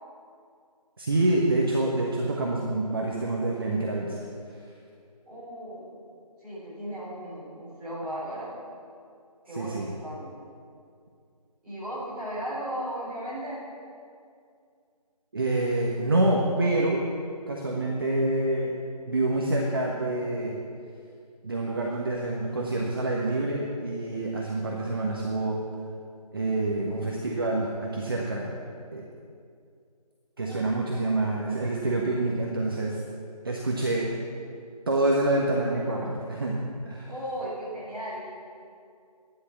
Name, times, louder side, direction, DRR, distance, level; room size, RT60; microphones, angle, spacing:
voice 1, 1.0-4.2 9.5-9.9 15.3-17.0 17.5-18.7 19.1-20.5 21.4-25.5 26.3-28.5 28.9-29.0 30.4-33.0 33.4-34.1 34.9-36.6 36.8-37.1, right 2 dB, 35° right, -2 dB, 1.3 m, -27 dB
voice 2, 5.2-6.0 6.4-8.6 9.4-10.3 11.6-13.6 30.4-31.2 37.1-38.3, equal, 5° right, -13 dB, 4.1 m, -36 dB
13.0 x 10.5 x 7.3 m, 2.3 s
figure-of-eight pair, 165°, 21 cm